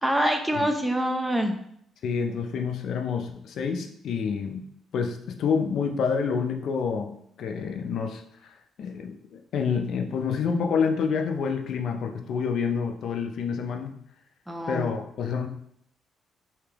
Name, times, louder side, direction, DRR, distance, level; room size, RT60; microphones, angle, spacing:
voice 1, 0.0-1.6 14.5-14.9, equal, 5° right, 4 dB, 0.5 m, -25 dB
voice 2, 2.0-4.7 4.9-7.1 7.4-13.9 14.7-15.5, left 6 dB, 70° left, 5 dB, 0.5 m, -28 dB
3.4 x 2.8 x 3.4 m, 0.69 s
cardioid pair, 90°, 0 cm